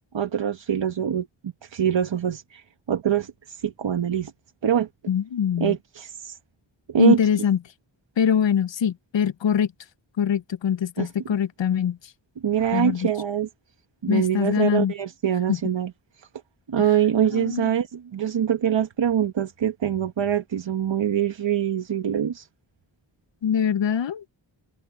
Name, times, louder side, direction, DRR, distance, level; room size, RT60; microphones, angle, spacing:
voice 1, 0.1-4.3 4.6-4.9 5.6-6.4 6.9-7.2 11.0-11.1 12.4-13.5 14.0-15.9 16.2-16.3 16.7-22.5, right 9 dB, 70° right, 1.2 m, -24 dB
voice 2, 5.1-5.7 7.0-7.6 8.2-9.7 10.2-12.0 12.7-13.1 14.1-14.9 15.5-15.6 16.8-16.9 17.3-17.7 23.4-24.2, left 8 dB, 70° left, 0.8 m, -23 dB
wide cardioid pair, 80°, 46 cm